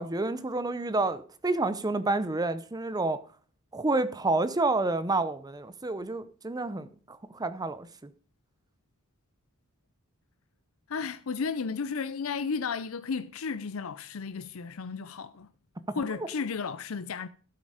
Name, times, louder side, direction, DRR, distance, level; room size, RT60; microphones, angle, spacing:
voice 1, 0.0-3.2 3.7-8.1 15.9-16.3, right 2 dB, 20° right, 0.6 m, -29 dB
voice 2, 10.9-15.5 15.9-17.3, left 5 dB, 70° left, 0.6 m, -33 dB
14.5 x 8.4 x 4.9 m
head